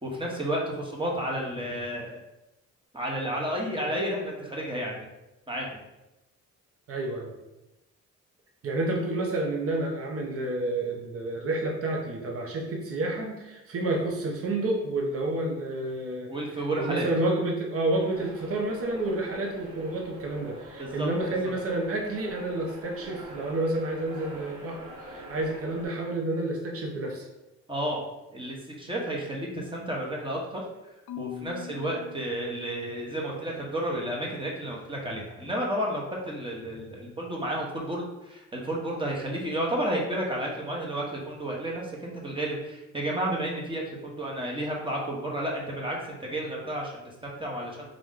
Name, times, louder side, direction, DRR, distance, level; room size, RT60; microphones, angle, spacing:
voice 1, 0.0-2.2 2.9-5.1 5.5-5.8 16.3-17.1 20.8-21.1 27.7-28.0 28.3-30.6 31.2-47.8, right 1 dB, 15° right, -2 dB, 1.1 m, -31 dB
voice 2, 6.9-7.3 8.6-16.3 16.7-27.2, right 2 dB, 50° right, 0 dB, 0.9 m, -29 dB
sound 1, 17.9-25.8, right 1 dB, 70° right, 1.5 m, -44 dB
Marimba xylophone / Wood, 31.1-33.3, left 16 dB, 70° left, 0.5 m, -43 dB
3.8 x 3.0 x 3.7 m, 0.97 s
cardioid pair, 90°, 30 cm